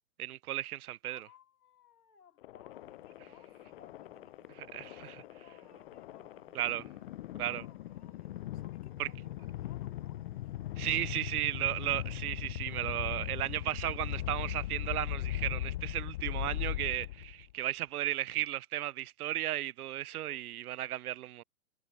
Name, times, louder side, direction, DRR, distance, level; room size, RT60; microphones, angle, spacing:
voice 1, 0.2-1.3 4.7-5.2 6.5-6.8 7.4-7.6 9.0-9.1 10.8-21.4, right 13 dB, 75° right, 0.6 m, -35 dB
voice 2, 1.0-6.7 7.4-11.3 17.6-17.8 20.1-20.7 21.1-21.4, left 7 dB, 90° left, 3.0 m, -63 dB
sound 1, 2.4-17.5, left 14 dB, 40° left, 0.5 m, -39 dB
sound 2, 2.7-14.9, right 25 dB, 35° right, 1.5 m, -65 dB
hypercardioid pair, 135°, 45 cm